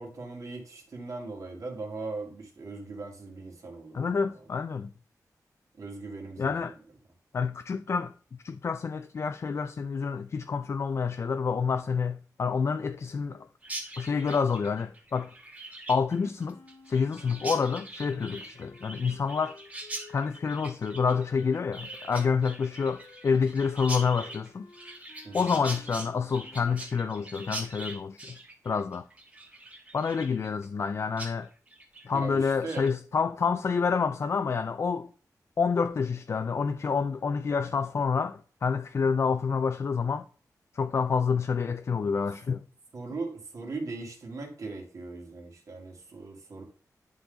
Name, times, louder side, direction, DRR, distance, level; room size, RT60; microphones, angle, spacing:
voice 1, 0.0-4.3 5.8-6.8 25.2-25.5 32.1-32.9 42.9-46.6, right 3 dB, 55° right, 2.1 m, -39 dB
voice 2, 3.9-4.9 6.4-6.7 7.3-8.1 8.4-13.5 14.0-15.3 15.9-16.6 16.9-19.6 20.1-24.7 25.3-28.4 28.6-29.0 29.9-31.5 32.0-35.1 35.6-40.3 40.7-42.6, left 5 dB, 45° left, 0.4 m, -28 dB
Chirp tweet, 13.6-30.9 31.2-31.3 31.7-32.1 32.4-32.9, right 2 dB, 20° right, 1.4 m, -42 dB
Wind instrument woodwind instrument, 16.4-20.5 21.2-26.7, left 4 dB, 60° left, 1.0 m, -54 dB
10.5 x 3.9 x 3.9 m
wide cardioid pair, 165°, 7 cm